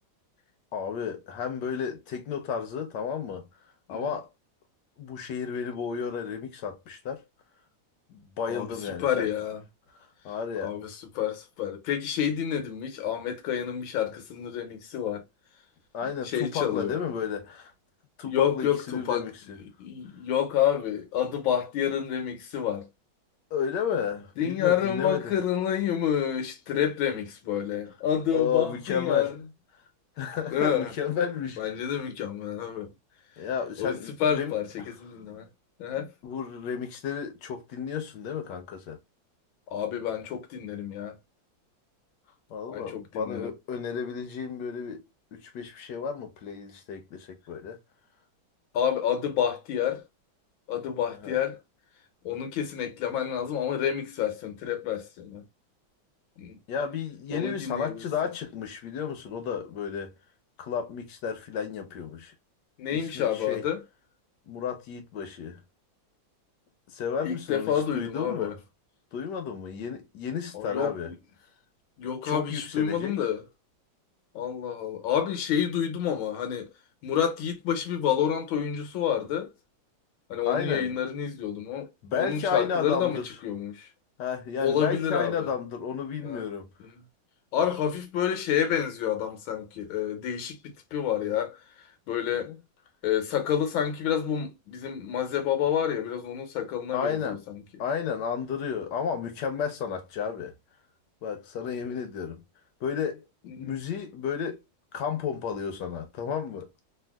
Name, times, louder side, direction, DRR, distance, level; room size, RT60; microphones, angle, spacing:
voice 1, 0.7-3.5 3.9-4.3 5.0-7.2 8.1-9.3 10.2-10.7 15.9-17.7 18.2-19.6 23.5-25.3 28.3-29.3 30.2-32.0 33.4-34.5 36.2-39.0 42.5-45.0 45.3-47.8 51.2-51.4 56.7-60.1 60.6-62.3 62.9-63.6 64.5-65.6 66.9-68.6 69.1-71.1 72.2-73.1 80.5-81.0 82.0-83.2 84.2-86.7 92.4-92.5 96.9-97.4 97.8-100.5 101.2-102.4 102.8-104.6 104.9-106.7, left 7 dB, 65° left, 1.3 m, -32 dB
voice 2, 8.5-9.6 10.3-10.4 10.6-15.2 16.0-17.0 18.2-19.3 19.6-22.9 24.4-29.4 30.5-30.9 31.6-32.9 33.4-33.5 33.8-35.5 35.8-36.1 39.7-41.2 42.7-43.5 48.7-50.0 50.7-51.6 52.2-55.4 56.4-56.6 57.3-58.0 62.8-63.8 67.2-68.5 70.5-71.1 72.0-73.4 74.3-76.7 77.0-79.5 80.3-83.9 84.6-85.5 86.2-86.4 86.8-87.0 87.5-92.5 93.0-97.6 101.8-102.0 103.5-103.8, left 9 dB, 85° left, 1.6 m, -29 dB
3.5 x 2.5 x 2.2 m
omnidirectional pair, 2.2 m